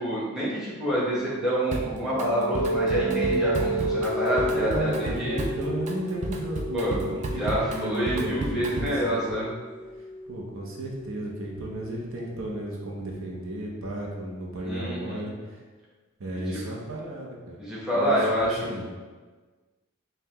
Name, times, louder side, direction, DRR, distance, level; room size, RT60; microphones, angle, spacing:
voice 1, 0.0-5.4 6.7-7.0 7.4-9.5 14.6-15.2 16.5-16.6 17.6-18.6, equal, 5° right, -8 dB, 1.0 m, -27 dB
sound 1, 1.1-12.6, right 1 dB, 35° left, 0.5 m, -32 dB
Drum kit, 1.7-2.3 2.5-9.1, right 2 dB, 35° right, 0.4 m, -33 dB
voice 2, 4.4-9.5 10.3-15.6 16.2-17.6 17.9-18.9, right 1 dB, 70° right, -2 dB, 0.7 m, -34 dB
5.4 x 2.2 x 2.9 m, 1.4 s
head